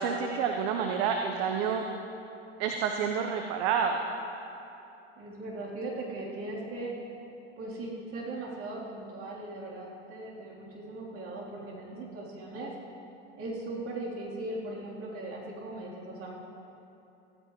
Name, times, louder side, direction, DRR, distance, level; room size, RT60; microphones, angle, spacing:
voice 1, 0.0-1.8 2.6-4.0, right 6 dB, 55° right, 4 dB, 1.0 m, -29 dB
voice 2, 5.2-7.0 7.6-12.7 13.4-16.3, right 2 dB, 40° right, -5 dB, 3.7 m, -39 dB
16.5 x 14.5 x 3.2 m, 2.8 s
hypercardioid pair, 85°, 35 cm